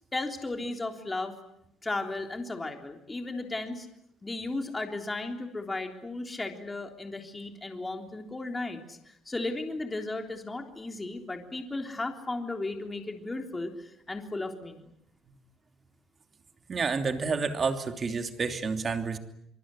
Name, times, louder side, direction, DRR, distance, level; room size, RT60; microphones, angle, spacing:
voice 1, 0.1-1.3 1.8-3.9 4.2-14.9, left 2 dB, 15° left, 4 dB, 3.5 m, -35 dB
voice 2, 16.7-19.2, right 4 dB, 35° right, 7 dB, 3.0 m, -29 dB
24.5 x 24.0 x 10.0 m, 0.77 s
cardioid pair, 120°, 0 cm